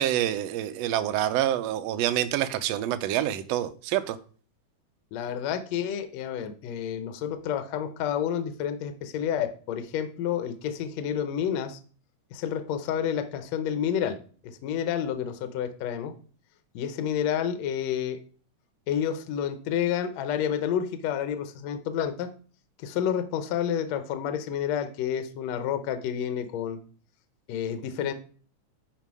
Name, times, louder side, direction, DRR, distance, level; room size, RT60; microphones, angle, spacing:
voice 1, 0.0-4.2, right 12 dB, 85° right, 11 dB, 1.5 m, -27 dB
voice 2, 5.1-11.8 12.3-14.2 14.6-16.1 16.8-18.2 18.9-22.3 22.8-26.8 27.5-28.1, left 9 dB, 70° left, 8 dB, 1.8 m, -29 dB
10.5 x 3.6 x 4.8 m, 0.41 s
omnidirectional pair, 3.6 m